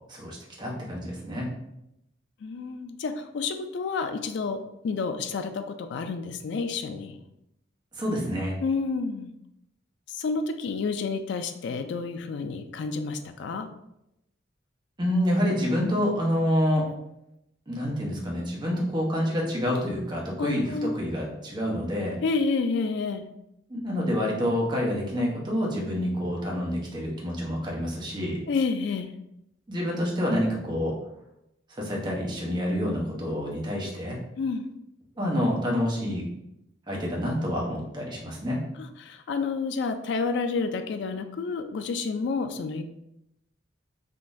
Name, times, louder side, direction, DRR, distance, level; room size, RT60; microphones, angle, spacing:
voice 1, 0.1-1.5 7.9-8.5 15.0-16.9 17.7-22.2 23.7-28.4 29.7-31.0 31.8-34.2 35.2-36.2 36.9-38.6, equal, 25° right, -2 dB, 0.7 m, -27 dB
voice 2, 2.4-4.6 4.8-7.2 8.6-9.3 10.1-13.7 20.4-20.9 22.2-23.2 28.5-29.1 34.4-34.7 38.8-42.8, left 4 dB, 65° left, 8 dB, 0.3 m, -29 dB
3.7 x 2.5 x 2.5 m, 0.84 s
head